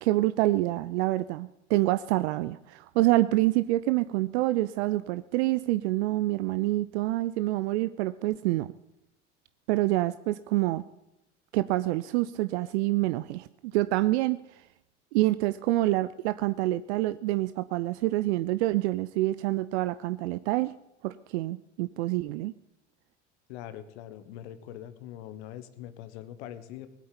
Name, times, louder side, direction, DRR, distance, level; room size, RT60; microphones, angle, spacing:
voice 1, 0.0-8.7 9.7-10.8 11.5-14.4 15.1-20.7 21.0-22.5, right 17 dB, 65° right, 13 dB, 0.6 m, -27 dB
voice 2, 23.5-26.9, left 11 dB, 65° left, 13 dB, 1.6 m, -42 dB
19.0 x 8.5 x 8.7 m, 0.89 s
hypercardioid pair, 75°, 36 cm